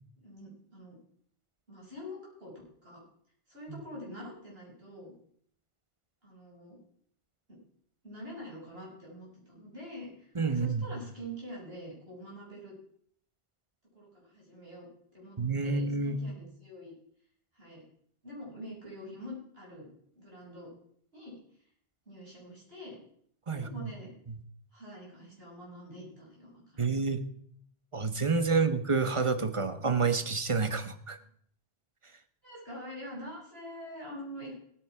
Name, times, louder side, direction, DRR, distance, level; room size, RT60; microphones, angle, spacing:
voice 1, 0.2-1.0 1.7-2.5 2.8-3.0 3.5-5.1 6.2-6.8 7.5-7.6 8.0-12.7 13.9-14.9 15.1-16.9 17.5-17.9 18.2-19.9 20.1-20.7 21.1-21.4 22.1-23.0 23.5-24.1 24.7-27.0 28.5-28.7 32.4-34.5, equal, 70° right, -4 dB, 7.0 m, -45 dB
voice 2, 10.3-10.9 15.4-16.2 23.5-23.7 26.8-27.2 27.9-31.2, right 4 dB, 30° right, 10 dB, 1.2 m, -28 dB
18.5 x 9.6 x 4.8 m, 0.65 s
omnidirectional pair, 1.0 m